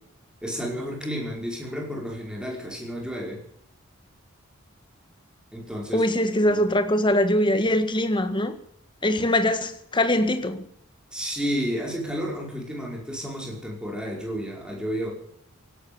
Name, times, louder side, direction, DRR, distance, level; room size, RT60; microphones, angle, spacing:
voice 1, 0.4-3.4 5.5-6.1 6.5-6.6 11.1-15.1, equal, 5° right, -1 dB, 5.3 m, -31 dB
voice 2, 5.9-8.6 9.0-10.6, left 1 dB, 20° left, 9 dB, 1.6 m, -22 dB
17.5 x 11.5 x 7.1 m, 0.70 s
head